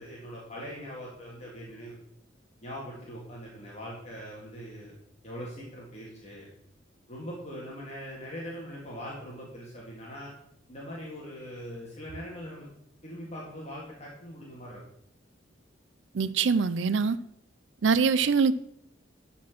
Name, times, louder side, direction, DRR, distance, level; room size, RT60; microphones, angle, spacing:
voice 1, 0.0-2.0 2.6-4.9 5.2-6.5 7.1-10.3 10.7-12.7 13.0-14.8, equal, 35° left, -4 dB, 1.9 m, -41 dB
voice 2, 16.1-17.2 17.8-18.5, right 5 dB, 70° right, 16 dB, 0.5 m, -23 dB
12.0 x 4.4 x 6.0 m, 0.75 s
head